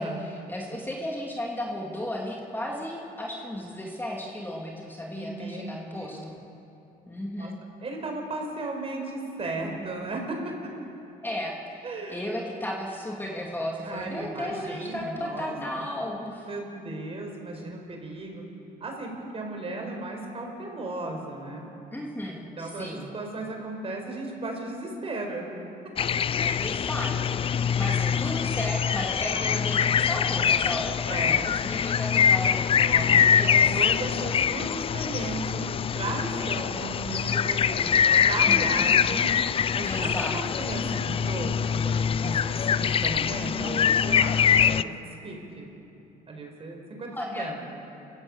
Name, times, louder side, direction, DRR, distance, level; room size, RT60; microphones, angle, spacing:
voice 1, 0.0-6.4 7.1-7.6 11.2-16.5 21.9-23.1 26.3-32.7 33.0-33.6 38.5-38.6 39.9-40.4 47.1-47.5, left 1 dB, 10° left, -2 dB, 2.9 m, -34 dB
voice 2, 5.1-5.6 5.9-6.3 7.4-7.5 7.8-10.5 11.8-12.2 13.8-15.9 16.4-18.4 18.8-21.7 22.6-25.5 27.8-28.0 29.3-30.4 31.0-31.5 32.5-38.0 38.2-39.3 39.7-44.9 45.2-45.7 46.3-47.6, right 2 dB, 35° right, 2 dB, 5.1 m, -35 dB
sound 1, 26.0-44.8, left 8 dB, 35° left, 0.4 m, -24 dB
28.5 x 16.5 x 7.4 m, 2.9 s
cardioid pair, 110°, 17 cm